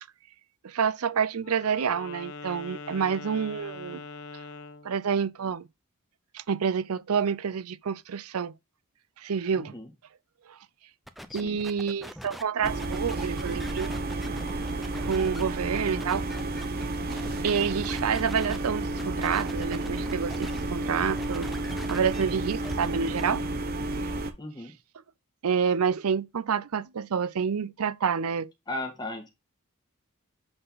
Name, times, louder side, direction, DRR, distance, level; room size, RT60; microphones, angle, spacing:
voice 1, 0.6-4.0 4.8-5.7 6.3-8.5 9.2-9.7 10.5-10.6 11.3-13.9 15.0-16.2 17.4-21.5 21.9-23.4 24.0-24.1 25.4-28.5, right 6 dB, 85° right, 0.5 m, -28 dB
Wind instrument woodwind instrument, 1.4-4.9, left 3 dB, 75° left, 0.8 m, -42 dB
voice 2, 9.5-9.9 11.3-11.6 24.4-24.7 28.7-29.3, left 2 dB, 20° left, 1.7 m, -36 dB
sound 1, 11.1-18.6 19.0-20.6 20.9-23.2, equal, ahead, 0.6 m, -43 dB
sound 2, 12.6-24.3, right 2 dB, 45° right, 1.0 m, -31 dB
7.8 x 4.0 x 3.9 m
head